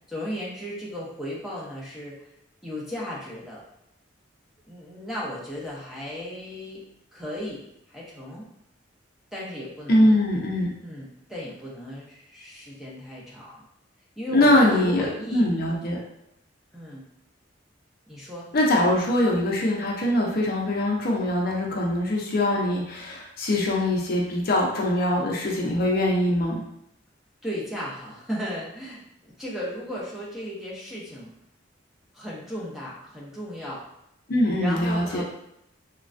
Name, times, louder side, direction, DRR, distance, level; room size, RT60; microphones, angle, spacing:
voice 1, 0.1-2.2 2.6-3.6 4.7-6.8 7.1-7.6 7.9-8.5 9.3-10.2 10.8-13.6 14.2-15.8 16.7-17.0 18.1-18.5 27.4-31.3 32.1-33.8 34.6-35.2, equal, ahead, -6 dB, 0.5 m, -35 dB
voice 2, 9.9-10.7 14.3-15.1 15.3-16.0 18.5-26.6 34.3-35.2, left 1 dB, 50° left, -2 dB, 0.5 m, -22 dB
3.1 x 2.2 x 2.5 m, 0.80 s
head